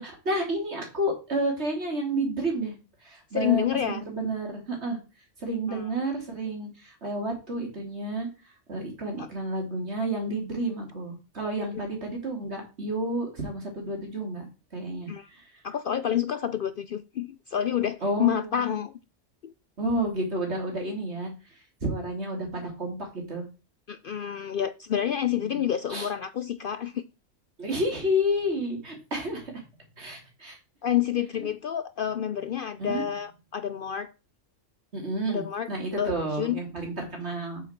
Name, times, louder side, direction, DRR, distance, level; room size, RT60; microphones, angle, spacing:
voice 1, 0.0-2.8 3.0-5.0 5.4-8.3 8.7-14.4 14.7-15.5 18.0-18.8 19.8-21.3 21.8-23.0 23.3-23.4 25.5-25.6 25.9-26.1 27.6-29.6 30.0-30.6 32.8-33.0 34.9-37.6, right 1 dB, 60° right, 3.3 m, -30 dB
voice 2, 3.3-4.0 5.7-5.9 9.2-9.3 15.1-15.3 15.6-18.9 19.4-19.5 23.9-27.0 30.8-34.1 35.3-35.7 36.0-36.6, left 10 dB, 60° left, 0.6 m, -28 dB
8.2 x 7.1 x 4.5 m
omnidirectional pair, 1.3 m